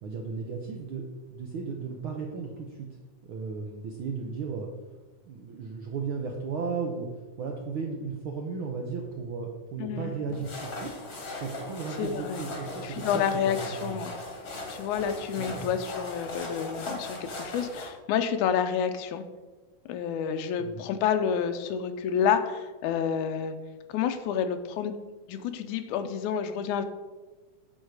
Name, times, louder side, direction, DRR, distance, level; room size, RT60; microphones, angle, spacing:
voice 1, 0.0-2.9 3.2-4.7 5.3-10.9 11.4-14.0 15.4-15.7 20.6-20.8, right 5 dB, 85° right, 1 dB, 1.1 m, -35 dB
voice 2, 9.8-10.1 12.0-12.5 12.8-14.1 14.7-19.2 19.9-23.6 23.9-25.0 25.3-26.9, left 8 dB, 85° left, 8 dB, 2.1 m, -29 dB
sound 1, 10.3-17.9, left 2 dB, 40° left, 1.4 m, -38 dB
7.9 x 6.4 x 4.7 m, 1.3 s
omnidirectional pair, 3.4 m